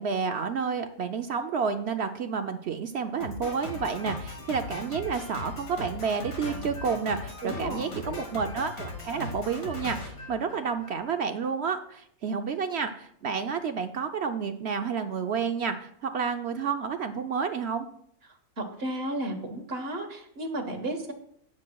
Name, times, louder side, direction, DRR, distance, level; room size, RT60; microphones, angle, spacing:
voice 1, 0.0-17.9, right 6 dB, 65° right, 7 dB, 0.7 m, -30 dB
Drum kit, 3.2-11.0, left 2 dB, 65° left, 2.0 m, -38 dB
voice 2, 7.4-8.2 18.6-21.1, right 1 dB, 45° right, 4 dB, 1.5 m, -33 dB
17.0 x 7.4 x 2.3 m, 0.66 s
omnidirectional pair, 1.6 m